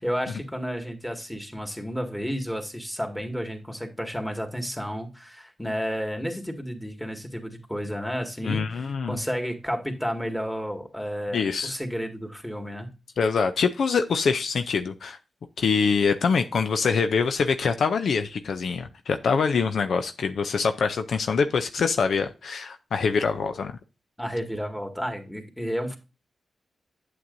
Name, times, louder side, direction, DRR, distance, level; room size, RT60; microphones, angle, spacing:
voice 1, 0.0-12.9 24.2-26.0, equal, 5° left, 3 dB, 2.0 m, -31 dB
voice 2, 8.4-9.2 11.3-11.7 13.2-15.2 15.6-23.7, left 5 dB, 75° left, 8 dB, 0.5 m, -24 dB
8.4 x 7.6 x 2.6 m, 0.30 s
supercardioid pair, 45°, 0 cm